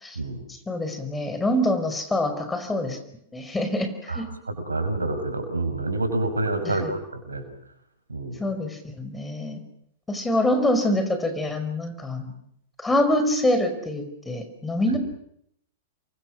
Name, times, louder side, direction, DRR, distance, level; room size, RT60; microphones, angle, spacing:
voice 1, 0.5-3.0 3.3-4.3 6.6-6.8 8.4-9.6 10.1-12.3 12.8-15.0, left 1 dB, 10° left, 8 dB, 5.3 m, -25 dB
voice 2, 4.1-7.4 8.1-8.4 14.9-15.0, right 2 dB, 90° right, 8 dB, 5.5 m, -28 dB
29.5 x 23.5 x 6.4 m, 0.72 s
figure-of-eight pair, 105°, 0 cm